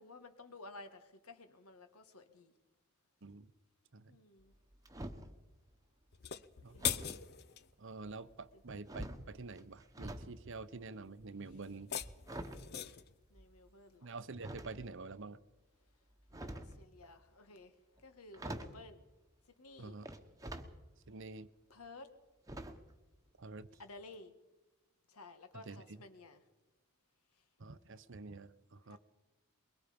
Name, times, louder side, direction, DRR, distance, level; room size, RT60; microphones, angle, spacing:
voice 1, 0.0-2.5 4.1-4.5 6.7-6.9 12.4-12.9 13.3-14.2 16.3-17.7 18.0-19.0 19.6-20.0 21.7-22.1 23.8-24.3 25.1-26.4 28.9-29.0, left 2 dB, 80° left, 8 dB, 1.9 m, -54 dB
voice 2, 3.2-3.5 3.9-4.2 6.6-6.8 7.8-11.9 14.0-15.4 19.8-20.1 21.1-21.5 23.4-23.7 25.5-26.0 27.6-29.0, right 3 dB, 55° right, 14 dB, 0.8 m, -47 dB
sound 1, 4.4-5.4 6.8-7.2 8.0-8.5 8.8-10.3 10.6-13.6 14.4-15.1 16.1-16.8 18.0-18.1 18.3-18.8 20.0-20.7 21.2-21.3 22.5-23.0 23.3-23.4 23.7-23.8, right 1 dB, 15° right, 1.2 m, -46 dB
sound 2, 6.1-7.7 11.6-13.1, left 11 dB, 45° left, 0.6 m, -40 dB
23.0 x 22.5 x 5.2 m, 1.1 s
head